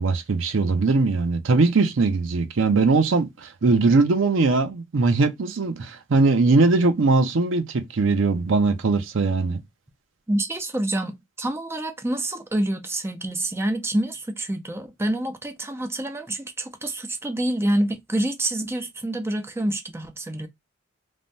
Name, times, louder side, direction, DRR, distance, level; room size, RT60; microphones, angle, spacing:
voice 1, 0.0-9.6, right 3 dB, 70° right, 0.6 m, -20 dB
voice 2, 10.3-20.5, right 1 dB, 10° right, 0.4 m, -27 dB
3.3 x 2.1 x 2.5 m
head